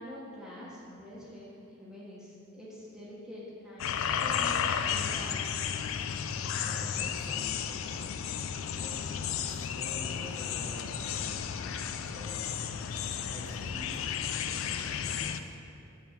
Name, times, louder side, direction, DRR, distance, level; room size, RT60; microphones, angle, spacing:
voice 1, 0.0-5.4, left 1 dB, 5° right, -8 dB, 1.1 m, -46 dB
sound 1, 3.8-15.4, left 8 dB, 75° left, 0.3 m, -33 dB
voice 2, 6.6-8.2 8.8-12.6 13.3-15.5, equal, 30° left, -5 dB, 1.3 m, -48 dB
7.4 x 4.7 x 5.2 m, 2.7 s
head